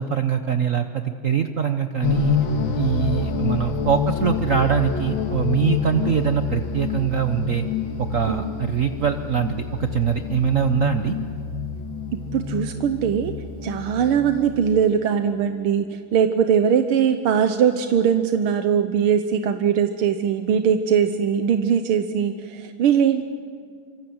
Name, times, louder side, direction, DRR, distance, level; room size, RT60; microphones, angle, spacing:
voice 1, 0.0-2.4 2.8-7.7 8.0-11.2, right 8 dB, 55° right, 7 dB, 0.9 m, -23 dB
sound 1, 2.0-14.8, left 6 dB, 70° left, 2.4 m, -27 dB
voice 2, 12.3-13.3 13.6-23.2, right 8 dB, 90° right, 7 dB, 1.8 m, -21 dB
26.0 x 25.5 x 7.9 m, 2.2 s
omnidirectional pair, 2.3 m